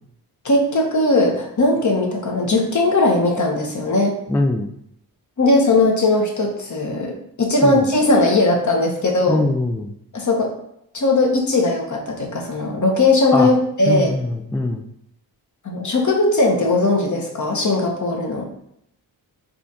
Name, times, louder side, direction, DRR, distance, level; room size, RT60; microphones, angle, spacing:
voice 1, 0.4-4.2 5.4-9.5 10.1-10.5 10.9-14.1 15.6-18.5, left 2 dB, 45° left, 0 dB, 1.1 m, -18 dB
voice 2, 4.3-4.7 7.6-7.9 9.3-9.9 13.3-13.5 13.9-14.8, left 2 dB, 5° left, 3 dB, 0.3 m, -22 dB
4.1 x 2.5 x 4.2 m, 0.75 s
cardioid pair, 60°, 41 cm